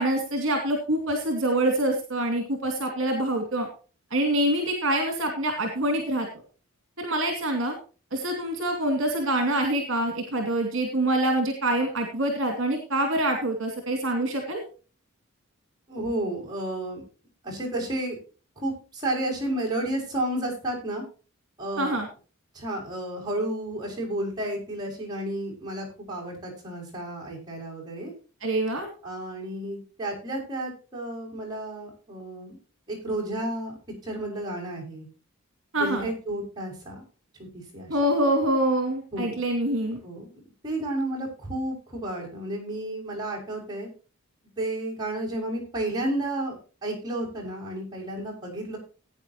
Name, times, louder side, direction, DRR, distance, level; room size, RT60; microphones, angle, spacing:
voice 1, 0.0-3.7 4.1-6.3 7.0-7.8 8.1-14.6 21.8-22.1 28.4-28.9 35.7-36.1 37.9-40.0, right 1 dB, 55° right, 3 dB, 2.5 m, -25 dB
voice 2, 15.9-17.0 17.4-18.2 18.6-21.0 21.6-22.0 22.5-28.1 29.0-32.6 32.9-33.7 34.0-35.1 35.7-37.0 37.4-38.0 39.1-39.4 40.0-40.3 40.6-43.9 44.6-46.6 46.8-48.8, right 1 dB, 20° right, -3 dB, 5.9 m, -32 dB
17.5 x 9.2 x 2.9 m, 0.35 s
head